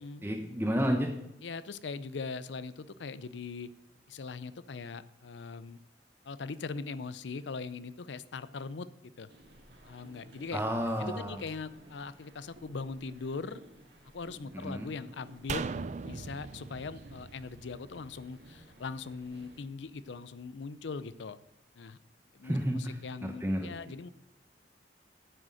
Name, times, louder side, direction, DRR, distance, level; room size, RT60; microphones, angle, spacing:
voice 1, 0.2-1.1 10.5-11.4 14.5-14.9 22.4-23.9, equal, 10° right, 2 dB, 0.9 m, -31 dB
voice 2, 1.4-3.7 4.1-5.8 6.2-9.3 9.8-10.6 11.0-13.6 14.1-15.6 16.0-21.4 21.7-22.0 22.3-24.1, left 4 dB, 80° left, 16 dB, 0.5 m, -41 dB
sound 1, 9.3-19.6, right 1 dB, 65° right, 2.1 m, -56 dB
sound 2, 15.5-18.8 19.1-19.2, right 5 dB, 40° right, 0.4 m, -39 dB
9.3 x 6.3 x 7.7 m, 0.85 s
head